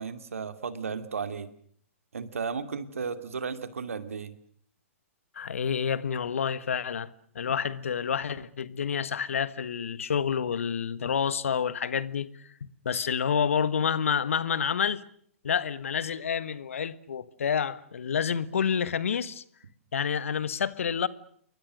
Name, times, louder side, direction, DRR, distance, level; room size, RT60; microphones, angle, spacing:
voice 1, 0.0-1.5 2.1-4.3, right 5 dB, 75° right, 2.5 m, -34 dB
voice 2, 5.3-12.4 12.8-15.0 15.4-19.4 19.9-21.1, left 7 dB, 65° left, 1.5 m, -28 dB
28.5 x 23.0 x 6.5 m
figure-of-eight pair, 120°, 8 cm